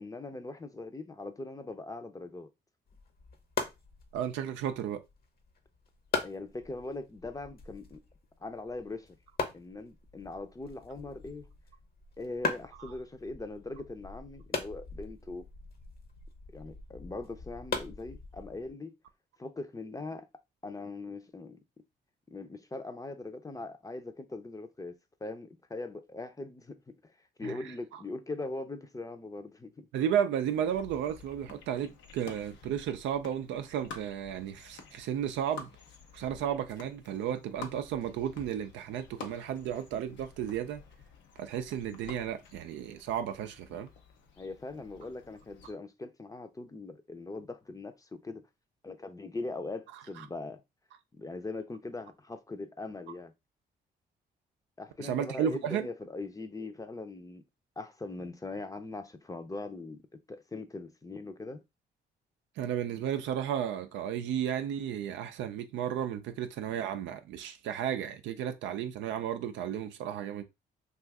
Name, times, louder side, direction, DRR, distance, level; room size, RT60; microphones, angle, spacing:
voice 1, 0.0-2.5 6.2-8.0 8.4-9.2 9.5-11.5 12.2-15.5 16.5-18.9 19.4-20.3 20.6-21.6 22.3-27.1 27.4-29.9 44.4-48.4 48.8-50.6 51.2-53.3 54.8-57.4 57.8-61.6, left 2 dB, 20° left, 0.5 m, -41 dB
sound 1, 2.9-18.7, left 4 dB, 55° left, 0.8 m, -40 dB
voice 2, 4.1-5.0 12.8-12.9 27.4-27.5 27.9-28.0 29.9-35.7 36.1-40.8 41.4-43.9 50.2-50.3 55.0-55.9 62.6-70.4, right 9 dB, 85° right, 0.4 m, -33 dB
sound 2, 30.5-45.7, left 5 dB, 80° left, 0.6 m, -51 dB
2.6 x 2.4 x 3.4 m
supercardioid pair, 60°, 19 cm